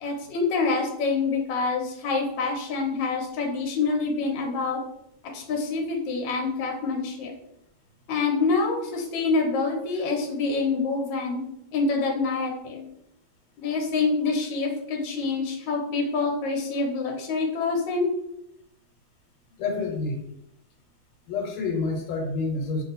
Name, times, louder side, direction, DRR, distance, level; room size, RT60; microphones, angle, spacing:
voice 1, 0.0-4.8 5.3-7.3 8.1-11.4 11.7-12.9 13.6-18.1, left 4 dB, 70° left, 0 dB, 1.5 m, -26 dB
voice 2, 19.6-20.2 21.3-22.8, left 3 dB, 85° left, 2 dB, 1.6 m, -28 dB
3.2 x 2.8 x 4.0 m, 0.77 s
omnidirectional pair, 2.3 m